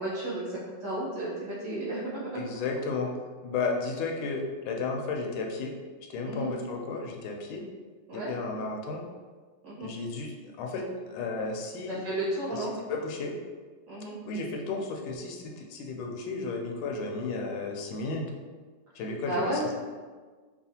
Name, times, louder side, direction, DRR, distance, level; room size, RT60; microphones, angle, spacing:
voice 1, 0.0-2.8 6.2-6.5 8.1-8.3 9.6-9.9 11.9-12.7 13.9-14.1 19.2-19.6, right 1 dB, 65° right, -9 dB, 2.4 m, -33 dB
voice 2, 2.3-3.1 3.4-5.7 6.1-7.6 8.1-9.0 9.8-12.0 12.9-13.3 14.3-18.3 18.9-19.7, left 3 dB, 80° left, 1 dB, 1.3 m, -33 dB
5.5 x 2.3 x 2.8 m, 1.4 s
omnidirectional pair, 2.3 m